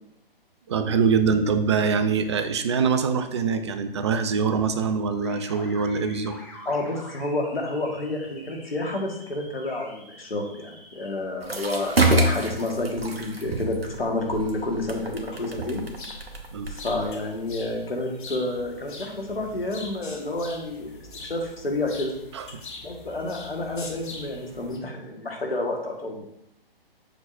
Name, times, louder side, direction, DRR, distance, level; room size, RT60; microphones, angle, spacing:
voice 1, 0.7-6.4 16.5-16.7 22.3-22.6, right 5 dB, 30° right, 9 dB, 0.4 m, -24 dB
sound 1, 5.2-11.1, left 1 dB, 5° left, 0.9 m, -46 dB
voice 2, 6.6-11.9 12.2-15.8 16.7-22.1 22.8-26.3, left 2 dB, 75° left, 2 dB, 1.5 m, -29 dB
sound 2, 11.4-17.6, right 2 dB, 80° right, 1.0 m, -27 dB
sound 3, 14.9-24.8, left 3 dB, 55° left, 1.1 m, -43 dB
7.2 x 5.6 x 2.5 m, 0.83 s
figure-of-eight pair, 125°, 30 cm